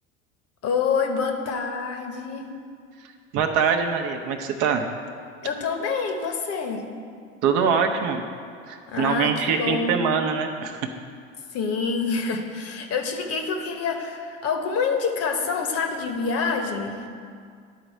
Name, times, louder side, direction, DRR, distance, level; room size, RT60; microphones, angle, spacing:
voice 1, 0.6-2.5 5.4-6.8 8.9-9.9 11.5-17.1, left 5 dB, 40° left, 4 dB, 1.0 m, -27 dB
voice 2, 3.3-4.9 7.4-8.2 8.7-10.8, right 6 dB, 50° right, 4 dB, 0.8 m, -23 dB
11.0 x 4.0 x 4.5 m, 2.2 s
hypercardioid pair, 85°, 39 cm